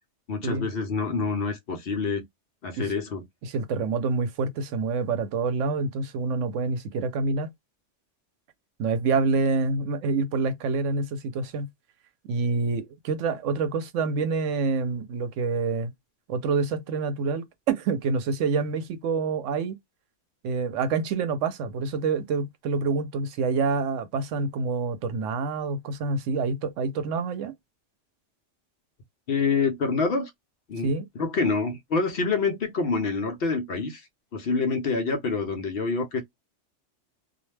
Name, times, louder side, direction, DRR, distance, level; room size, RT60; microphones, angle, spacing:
voice 1, 0.3-2.2 2.6-3.2 29.3-30.3 30.7-30.9 31.2-34.0 34.3-36.2, left 4 dB, 60° left, 0.8 m, -26 dB
voice 2, 3.4-7.5 8.8-11.7 12.3-15.9 16.3-19.8 20.4-27.5 30.8-31.1, right 4 dB, 85° right, 0.9 m, -27 dB
2.4 x 2.1 x 3.1 m
omnidirectional pair, 1.2 m